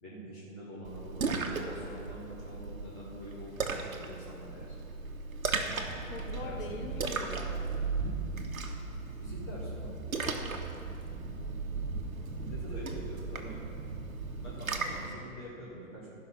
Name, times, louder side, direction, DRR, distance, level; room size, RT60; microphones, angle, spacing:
voice 1, 0.0-4.8 6.4-6.6 9.2-9.9 12.3-13.6 14.3-16.1, equal, 5° left, -8 dB, 0.4 m, -45 dB
Splash splatter, 0.8-15.1, right 4 dB, 80° right, 1.2 m, -37 dB
sound 1, 5.7-14.5, right 3 dB, 30° right, 1.1 m, -43 dB
voice 2, 5.8-7.6 10.2-10.6, left 4 dB, 40° left, 1 dB, 1.4 m, -43 dB
14.0 x 5.7 x 5.9 m, 2.6 s
hypercardioid pair, 140°, 41 cm